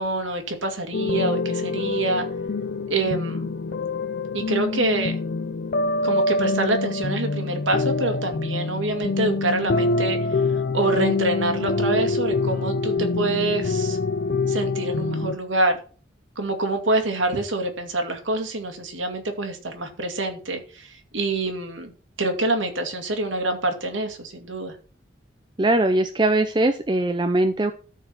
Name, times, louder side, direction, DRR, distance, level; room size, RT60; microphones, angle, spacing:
voice 1, 0.0-2.3 2.9-3.5 4.3-5.2 6.0-10.2 10.7-14.0 14.5-15.8 16.4-21.9 22.2-24.7, right 2 dB, 85° right, 5 dB, 2.3 m, -26 dB
sound 1, 0.9-15.4, left 3 dB, 55° left, 0.5 m, -25 dB
voice 2, 25.6-27.7, right 2 dB, 25° right, 7 dB, 0.6 m, -21 dB
13.5 x 4.8 x 5.9 m, 0.40 s
head